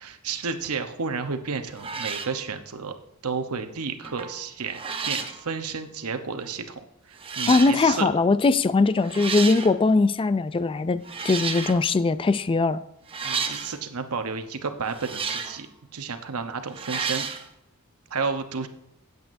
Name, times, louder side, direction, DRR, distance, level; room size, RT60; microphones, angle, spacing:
voice 1, 0.0-2.9 3.2-4.8 5.0-6.7 7.1-8.1 13.2-15.7 15.9-17.3 18.1-18.7, right 5 dB, 90° right, 0.9 m, -31 dB
sound 1, 1.3-1.4 1.8-2.4 4.0-4.4 4.7-5.4 6.4-6.5 7.2-7.8 9.0-9.8 11.0-11.9 13.1-13.8 14.9-15.6 16.7-17.4, right 5 dB, 25° right, 0.8 m, -31 dB
voice 2, 7.5-12.8, left 3 dB, 25° left, 0.3 m, -21 dB
16.5 x 8.0 x 2.6 m
head